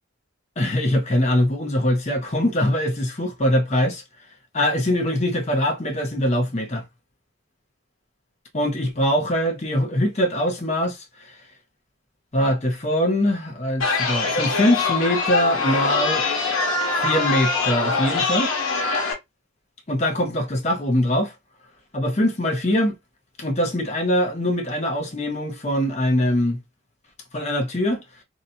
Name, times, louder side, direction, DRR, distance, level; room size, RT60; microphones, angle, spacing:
voice 1, 0.6-4.0 4.5-6.8 8.5-11.4 12.3-16.3 16.9-18.5 19.9-21.3 21.9-22.9 23.4-26.6 27.3-28.0, equal, 35° left, 0.7 m, -22 dB
Chatter, 13.8-19.1, left 4 dB, 85° left, 0.9 m, -23 dB
2.7 x 2.2 x 2.7 m
head